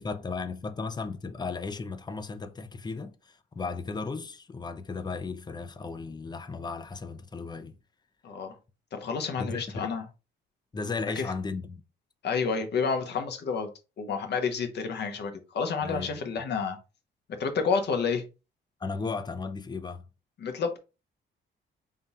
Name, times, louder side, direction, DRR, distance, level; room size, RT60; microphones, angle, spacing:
voice 1, 0.0-7.8 9.4-9.9 10.7-11.8 15.8-16.1 18.8-20.1, left 4 dB, 20° left, 0.5 m, -35 dB
voice 2, 8.2-8.6 8.9-10.0 11.2-11.3 12.2-13.7 14.0-16.8 17.3-18.2 20.4-20.8, left 5 dB, 60° left, 0.9 m, -29 dB
3.7 x 2.3 x 4.1 m
cardioid pair, 90°, 20 cm